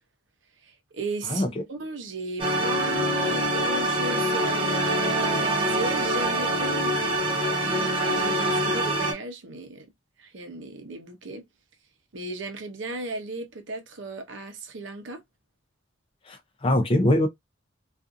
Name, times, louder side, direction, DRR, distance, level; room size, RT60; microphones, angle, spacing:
voice 1, 0.6-7.0 7.6-9.9 10.2-11.5 12.1-15.2, right 2 dB, 65° right, 0.6 m, -36 dB
voice 2, 1.3-1.6 16.3-17.3, left 1 dB, 25° left, 0.5 m, -23 dB
sound 1, 2.4-9.1, right 1 dB, 25° right, 0.6 m, -25 dB
2.5 x 2.4 x 2.5 m
head